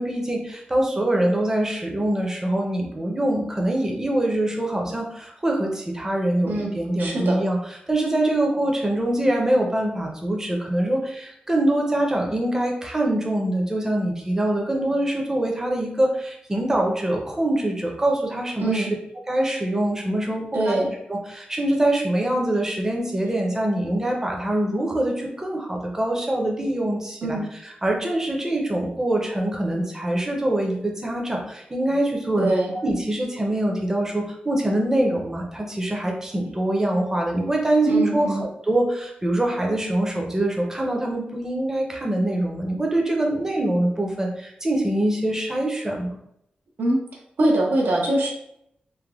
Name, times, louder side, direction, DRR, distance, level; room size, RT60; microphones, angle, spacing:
voice 1, 0.0-7.6 7.9-18.9 19.3-20.8 21.1-32.5 32.8-46.2, right 1 dB, 15° right, 0 dB, 0.5 m, -24 dB
voice 2, 7.0-7.4 18.6-18.9 20.5-20.9 27.2-27.5 32.4-32.7 37.8-38.4 46.8-47.0 47.4-48.3, right 1 dB, 80° right, -1 dB, 0.6 m, -22 dB
3.2 x 2.1 x 2.3 m, 0.75 s
wide cardioid pair, 125°, 3 cm